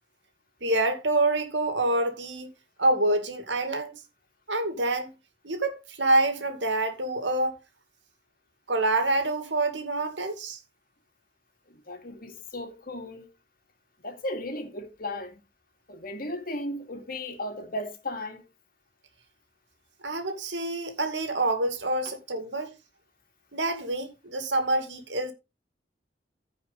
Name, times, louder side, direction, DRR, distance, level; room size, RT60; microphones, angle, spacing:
voice 1, 0.6-2.5 2.8-4.0 4.5-5.1 5.4-7.5 8.7-10.6 20.0-22.7 23.5-25.3, right 2 dB, 80° right, 2.3 m, -27 dB
voice 2, 11.7-13.3 14.0-15.4 15.9-18.4 22.0-22.1, left 1 dB, 55° left, 2.4 m, -36 dB
15.0 x 5.2 x 4.0 m
head